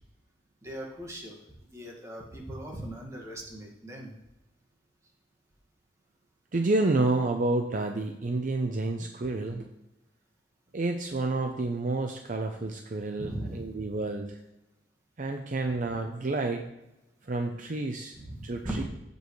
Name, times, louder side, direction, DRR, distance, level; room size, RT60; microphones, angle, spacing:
voice 1, 0.6-1.4 1.7-4.1 13.2-13.8 18.1-18.8, right 1 dB, 15° right, -1 dB, 1.8 m, -39 dB
voice 2, 6.5-9.7 10.7-14.4 15.2-16.7 17.3-18.1 18.4-18.8, right 2 dB, 45° right, 4 dB, 0.6 m, -29 dB
15.5 x 5.3 x 3.2 m, 0.93 s
head